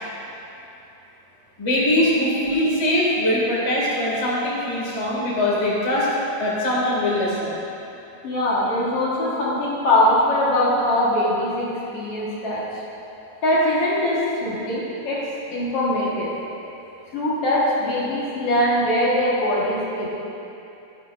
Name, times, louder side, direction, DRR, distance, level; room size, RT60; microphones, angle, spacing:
voice 1, 1.6-6.1 6.4-7.6 11.0-11.1, left 1 dB, 35° left, -6 dB, 0.5 m, -22 dB
voice 2, 8.2-12.6 13.4-16.3 17.1-20.1, left 1 dB, 60° left, -7 dB, 1.8 m, -22 dB
11.0 x 10.5 x 2.4 m, 2.9 s
omnidirectional pair, 4.0 m